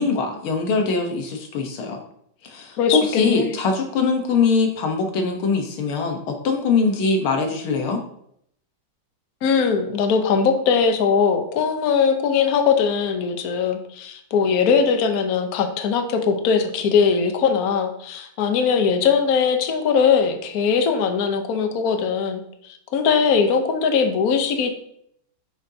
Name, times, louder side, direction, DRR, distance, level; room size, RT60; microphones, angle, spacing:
voice 1, 0.0-2.0 2.4-8.0, left 4 dB, 85° left, 4 dB, 2.0 m, -22 dB
voice 2, 2.8-3.5 9.4-24.7, left 6 dB, 55° left, 6 dB, 1.2 m, -20 dB
9.3 x 6.6 x 2.8 m, 0.71 s
omnidirectional pair, 2.2 m